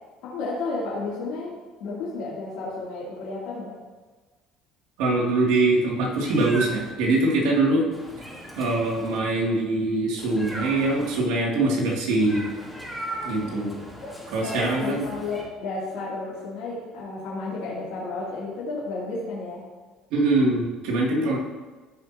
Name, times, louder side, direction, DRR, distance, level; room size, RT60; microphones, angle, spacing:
voice 1, 0.2-3.7 13.4-13.7 14.0-14.2 14.4-19.6, left 3 dB, 75° left, -8 dB, 3.1 m, -32 dB
voice 2, 5.0-7.9 8.6-12.4 13.2-13.8 14.3-15.1 20.1-21.4, right 2 dB, 75° right, -3 dB, 2.8 m, -23 dB
Meow, 6.1-6.9 7.9-9.2 10.2-11.2 12.2-15.4, right 1 dB, ahead, 3.3 m, -37 dB
15.0 x 6.2 x 3.0 m, 1.3 s
supercardioid pair, 90°, 0 cm